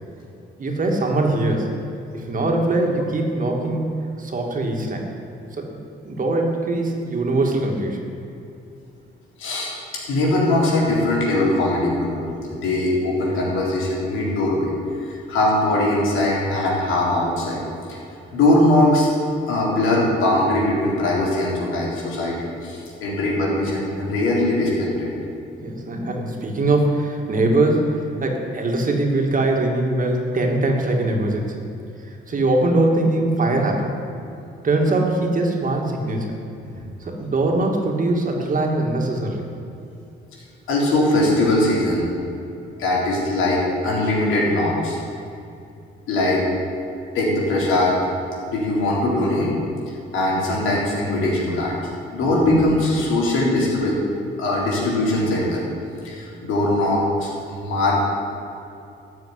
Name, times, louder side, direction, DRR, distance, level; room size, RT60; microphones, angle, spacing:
voice 1, 0.6-1.7 2.1-3.9 4.2-5.1 5.5-5.8 6.0-8.0 25.6-31.6 32.0-34.0 34.6-36.3 37.0-39.5 52.4-52.5, right 2 dB, 40° right, 1 dB, 2.5 m, -22 dB
voice 2, 9.4-9.7 10.1-12.2 12.5-14.7 15.0-17.6 17.9-18.0 18.3-19.1 19.5-22.4 22.6-25.1 36.6-36.7 40.7-42.0 42.8-45.0 46.1-46.4 47.1-48.0 48.5-49.5 50.1-51.7 52.1-54.0 54.4-55.6 56.0-57.3 57.6-57.9, left 1 dB, 90° left, -4 dB, 3.8 m, -20 dB
13.0 x 6.9 x 9.7 m, 2.6 s
cardioid pair, 90°, 20 cm